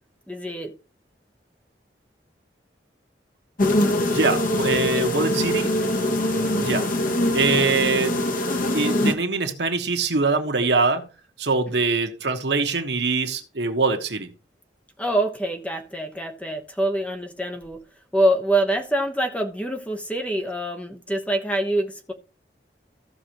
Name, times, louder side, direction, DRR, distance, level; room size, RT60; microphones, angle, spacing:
voice 1, 0.3-0.7 4.9-5.1 6.3-6.5 15.0-17.8 18.1-22.1, right 1 dB, 5° left, 1.1 m, -25 dB
sound 1, 3.6-9.1, left 1 dB, 50° left, 1.2 m, -23 dB
voice 2, 4.1-5.7 6.6-6.9 7.3-8.2 8.7-11.0 11.4-14.3, right 3 dB, 70° right, 1.3 m, -23 dB
15.0 x 6.2 x 3.0 m
head